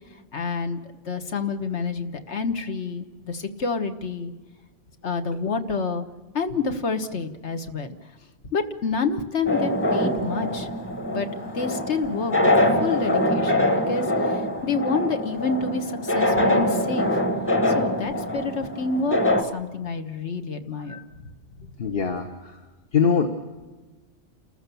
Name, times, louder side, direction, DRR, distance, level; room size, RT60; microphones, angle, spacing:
voice 1, 0.3-0.8 1.1-4.3 5.0-6.1 6.3-8.0 8.5-10.7 11.1-11.3 11.5-17.2 17.7-21.3, left 4 dB, 70° left, 7 dB, 1.6 m, -28 dB
sound 1, 9.5-19.4, left 1 dB, 10° left, 1.5 m, -24 dB
voice 2, 21.8-22.6 22.9-23.3, left 6 dB, 55° left, 4 dB, 1.4 m, -23 dB
29.5 x 14.0 x 7.0 m, 1.3 s
omnidirectional pair, 1.2 m